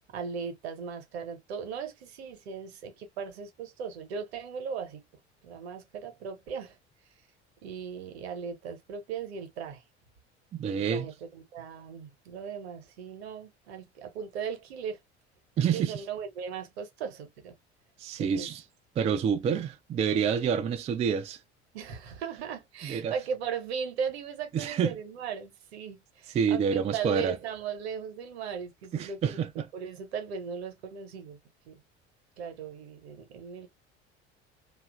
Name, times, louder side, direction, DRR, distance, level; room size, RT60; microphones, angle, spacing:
voice 1, 0.1-5.0 5.4-6.8 7.6-9.8 10.7-15.0 15.7-17.5 18.2-18.5 21.7-29.4 29.7-31.4 31.7-31.8 32.4-33.7, right 6 dB, 65° right, 0.9 m, -37 dB
voice 2, 10.5-11.1 15.6-16.0 18.0-18.6 19.0-21.4 22.8-23.1 24.5-25.0 26.3-27.4 28.9-29.7, right 7 dB, 20° right, 0.4 m, -28 dB
2.8 x 2.4 x 2.3 m
figure-of-eight pair, 65°, 35 cm